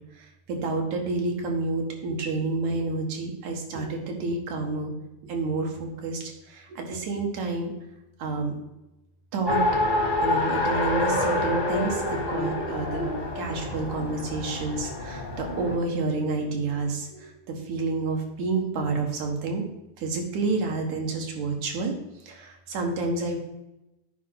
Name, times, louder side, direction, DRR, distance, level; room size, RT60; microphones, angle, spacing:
voice 1, 0.2-4.9 5.2-7.7 8.2-8.6 9.3-9.6 10.2-19.6 20.0-21.9 22.3-23.4, right 3 dB, 80° right, 2 dB, 2.8 m, -29 dB
Race car auto racing, 9.5-15.8, left 2 dB, 30° left, 0.9 m, -27 dB
9.3 x 5.0 x 5.7 m, 0.94 s
omnidirectional pair, 3.3 m